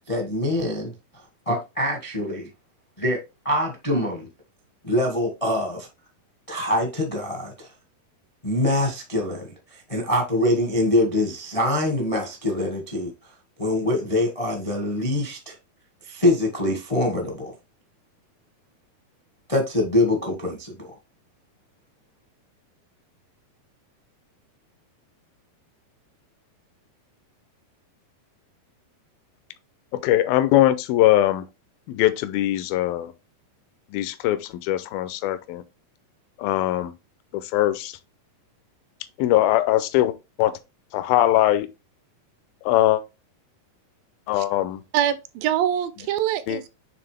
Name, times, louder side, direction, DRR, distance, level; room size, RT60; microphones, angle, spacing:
voice 1, 0.1-0.9 1.4-2.5 3.0-3.2 3.4-4.3 4.8-5.9 6.5-7.7 8.4-13.1 13.6-15.5 16.0-17.5 19.5-20.9, left 1 dB, 55° left, 0.3 m, -24 dB
voice 2, 30.0-31.4 31.9-33.1 33.9-35.6 36.4-36.9 37.3-37.9 39.2-40.5 40.9-41.7 42.7-43.0 44.3-44.8 46.5-46.6, left 14 dB, 85° left, 2.4 m, -21 dB
voice 3, 44.9-46.7, right 11 dB, 80° right, 2.2 m, -24 dB
9.0 x 3.6 x 3.3 m
omnidirectional pair, 4.3 m